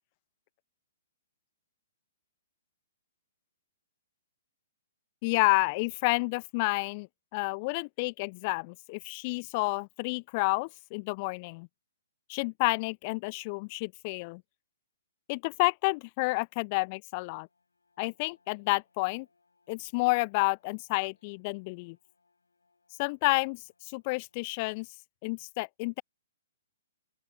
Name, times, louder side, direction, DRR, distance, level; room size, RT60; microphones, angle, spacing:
voice 1, 5.2-7.1 7.3-11.7 12.3-14.4 15.3-17.5 18.0-19.3 19.7-22.0 23.0-24.9 25.2-26.0, left 28 dB, 35° left, 0.4 m, -30 dB
Bowed string instrument, 17.2-24.8, left 4 dB, 75° left, 7.3 m, -74 dB
open air
figure-of-eight pair, 120°, 0 cm